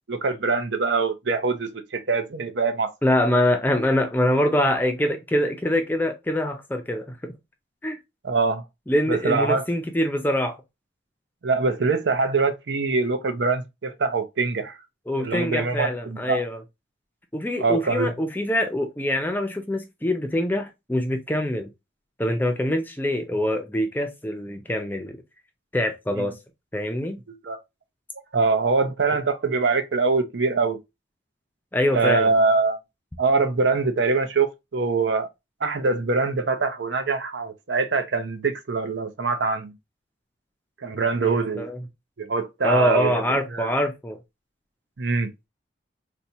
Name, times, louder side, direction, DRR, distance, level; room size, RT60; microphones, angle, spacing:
voice 1, 0.1-2.9 8.2-8.6 9.1-9.7 11.4-14.8 15.2-16.4 17.6-18.1 26.2-26.3 27.3-27.6 28.3-30.8 31.9-32.8 33.2-35.3 35.6-39.7 40.8-41.7 42.2-43.2 43.5-43.7 45.0-45.3, right 4 dB, 75° right, 0.6 m, -23 dB
voice 2, 3.0-7.2 7.8-8.0 8.9-10.6 15.1-16.6 17.3-21.7 22.2-25.2 25.7-26.4 26.7-27.2 31.7-32.3 41.2-41.8 42.6-44.2, left 1 dB, 10° left, 0.4 m, -24 dB
4.2 x 2.2 x 2.6 m
head